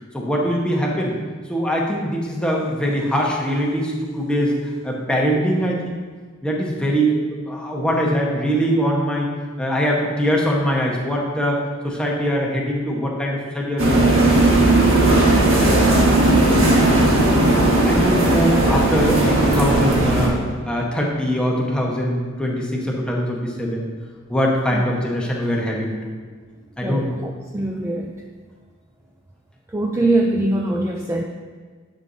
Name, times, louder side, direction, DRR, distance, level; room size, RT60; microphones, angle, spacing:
voice 1, 0.1-1.1 1.5-4.6 4.8-6.0 6.4-9.3 9.6-11.6 11.8-14.3 17.1-17.5 17.8-23.9 24.3-26.1 26.8-27.2, equal, 5° left, -2 dB, 1.2 m, -22 dB
sound 1, 13.8-20.3, right 2 dB, 70° right, 1.6 m, -16 dB
voice 2, 26.8-28.1 29.7-31.2, right 2 dB, 15° right, 0 dB, 0.4 m, -22 dB
10.5 x 6.5 x 2.7 m, 1.5 s
head